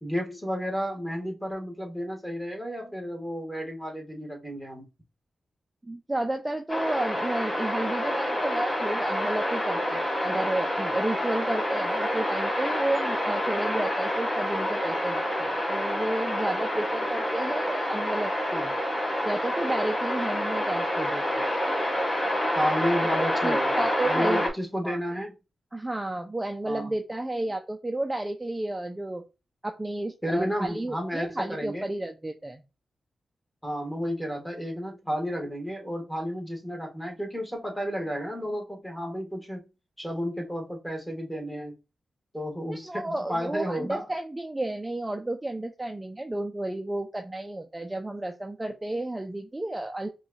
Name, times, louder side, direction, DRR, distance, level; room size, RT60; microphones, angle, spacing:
voice 1, 0.0-4.9 22.5-25.3 26.6-26.9 30.2-31.9 33.6-39.6 40.0-41.7 42.3-44.0, equal, 5° left, 1.5 m, -32 dB
voice 2, 5.8-18.7 19.2-21.4 23.1-24.5 24.8-25.0 25.7-29.2 29.6-32.6 42.9-50.1, right 1 dB, 20° right, 0.5 m, -32 dB
sound 1, 6.7-24.5, equal, 40° left, 2.3 m, -28 dB
4.8 x 2.3 x 2.7 m
cardioid pair, 55°, 0 cm